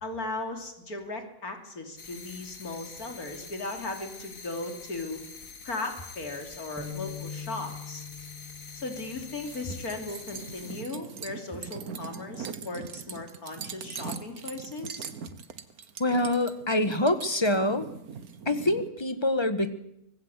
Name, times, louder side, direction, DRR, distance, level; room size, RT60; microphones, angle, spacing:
voice 1, 0.0-5.2 5.6-8.0 8.7-15.1, left 2 dB, 90° left, 5 dB, 3.6 m, -37 dB
sound 1, 2.0-10.8, left 4 dB, 65° left, 2.3 m, -46 dB
sound 2, 6.8-10.3, left 7 dB, ahead, 4.3 m, -43 dB
sound 3, 9.4-18.9, right 6 dB, 85° right, 1.8 m, -41 dB
voice 2, 16.0-17.9 18.4-19.7, left 1 dB, 20° left, 11 dB, 1.5 m, -25 dB
24.5 x 19.0 x 8.3 m, 0.79 s
omnidirectional pair, 1.5 m